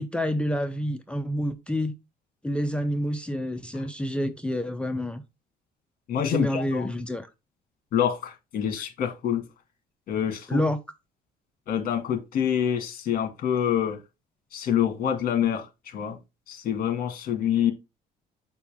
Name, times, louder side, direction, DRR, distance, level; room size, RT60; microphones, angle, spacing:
voice 1, 0.0-1.9 2.4-5.2 6.3-7.3 10.5-10.8, equal, 5° left, 0.7 m, -28 dB
voice 2, 6.1-6.9 7.9-9.5 10.1-10.6 11.7-14.0 14.5-16.2 16.5-17.7, left 9 dB, 55° left, 2.0 m, -26 dB
7.2 x 4.4 x 3.6 m
cardioid pair, 110°, 17 cm